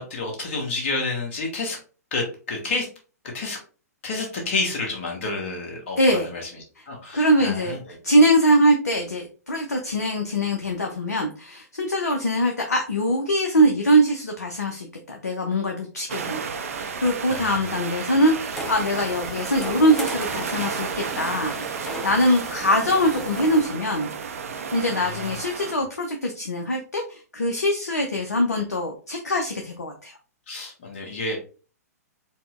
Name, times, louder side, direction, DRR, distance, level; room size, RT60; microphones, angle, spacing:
voice 1, 0.0-1.8 2.1-2.9 3.3-3.6 4.0-8.0 17.3-17.7 24.9-25.4 30.5-31.4, left 3 dB, 45° left, 1 dB, 1.1 m, -30 dB
voice 2, 6.0-6.3 7.1-7.8 8.0-16.5 16.8-21.6 21.8-24.1 24.7-30.1, equal, 75° left, 3 dB, 0.5 m, -22 dB
sound 1, 16.1-25.7, right 6 dB, 55° right, 0.4 m, -32 dB
sound 2, 18.5-23.6, right 2 dB, 5° left, 0.5 m, -36 dB
4.2 x 2.0 x 2.3 m, 0.37 s
figure-of-eight pair, 110°, 9 cm